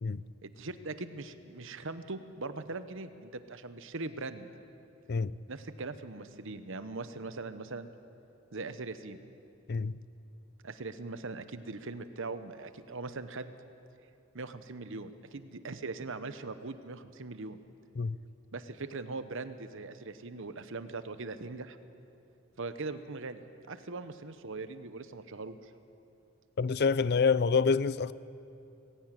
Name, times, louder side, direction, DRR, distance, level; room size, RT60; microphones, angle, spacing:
voice 1, 0.4-4.5 5.5-7.9 8.5-9.2 10.6-13.5 14.3-17.6 18.5-21.8 22.6-25.7, right 3 dB, 65° right, 1.0 m, -41 dB
voice 2, 26.6-28.1, left 5 dB, 50° left, 0.5 m, -27 dB
20.5 x 16.0 x 9.0 m
head